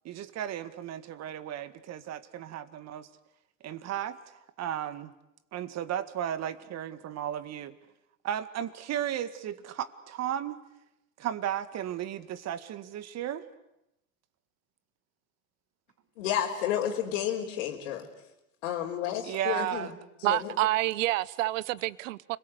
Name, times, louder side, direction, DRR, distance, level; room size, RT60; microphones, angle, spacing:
voice 1, 0.0-3.1 3.6-4.2 4.6-5.1 5.5-7.7 8.2-10.6 11.2-13.4 19.2-19.9, right 10 dB, 40° right, 12 dB, 1.9 m, -34 dB
voice 2, 16.2-18.1 18.6-19.9 20.2-20.5, left 10 dB, 70° left, -4 dB, 4.0 m, -31 dB
voice 3, 20.2-22.4, right 17 dB, 65° right, 20 dB, 1.0 m, -28 dB
30.0 x 22.0 x 8.2 m, 0.87 s
hypercardioid pair, 100°, 41 cm